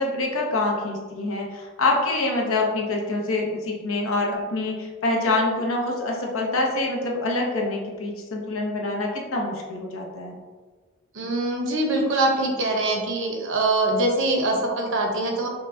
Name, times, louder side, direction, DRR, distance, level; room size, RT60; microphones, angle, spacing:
voice 1, 0.0-10.4, left 2 dB, 65° left, 0 dB, 0.7 m, -25 dB
voice 2, 11.1-15.5, right 2 dB, 60° right, 1 dB, 0.7 m, -23 dB
5.4 x 2.2 x 2.6 m, 1.4 s
head